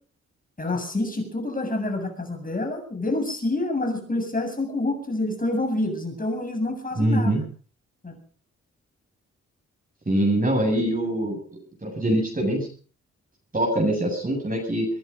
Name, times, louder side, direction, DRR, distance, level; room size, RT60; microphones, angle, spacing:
voice 1, 0.6-7.3 8.0-8.2, left 2 dB, 25° left, 5 dB, 7.6 m, -27 dB
voice 2, 7.0-7.4 10.1-12.7 13.5-14.9, right 1 dB, 30° right, 0 dB, 7.5 m, -24 dB
24.5 x 11.0 x 5.4 m, 0.41 s
cardioid pair, 60°, 30 cm